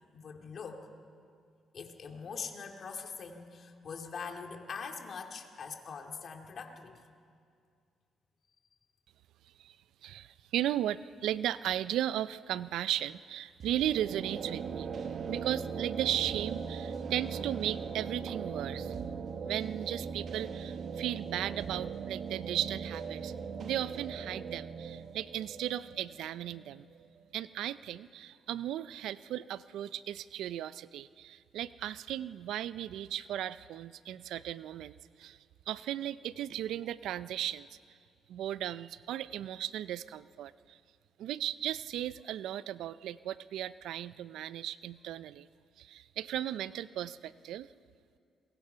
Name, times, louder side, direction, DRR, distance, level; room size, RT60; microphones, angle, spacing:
voice 1, 0.1-0.9 1.7-7.0, left 5 dB, 50° left, 4 dB, 2.4 m, -43 dB
voice 2, 10.0-19.0 19.4-23.3 23.6-26.9 27.3-37.8 38.3-40.8 41.2-45.5 45.8-47.7, right 12 dB, 80° right, 16 dB, 0.5 m, -36 dB
sound 1, 13.6-27.3, right 6 dB, 55° right, 1.2 m, -39 dB
28.5 x 22.0 x 5.7 m, 2.3 s
cardioid pair, 90°, 0 cm